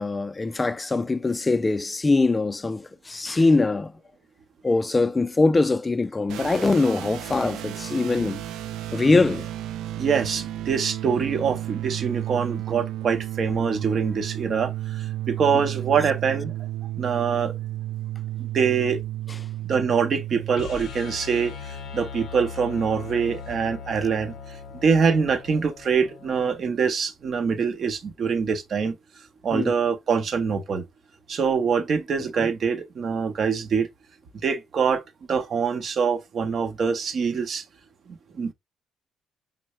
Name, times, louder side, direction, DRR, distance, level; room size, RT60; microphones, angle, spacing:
voice 1, 0.0-3.9 4.6-8.4 8.9-9.5 29.5-29.7 32.4-32.5, left 3 dB, 25° left, 0.3 m, -22 dB
sound 1, 6.3-20.6, right 14 dB, 90° right, 0.3 m, -32 dB
voice 2, 10.0-16.5 17.0-17.5 18.4-19.0 19.7-24.6 24.8-28.9 29.4-30.8 31.3-33.9 34.4-35.0 35.3-37.6 38.1-38.5, right 6 dB, 55° right, 0.7 m, -24 dB
sound 2, 20.5-26.6, left 5 dB, 65° left, 0.7 m, -39 dB
5.4 x 2.0 x 3.0 m
cardioid pair, 90°, 0 cm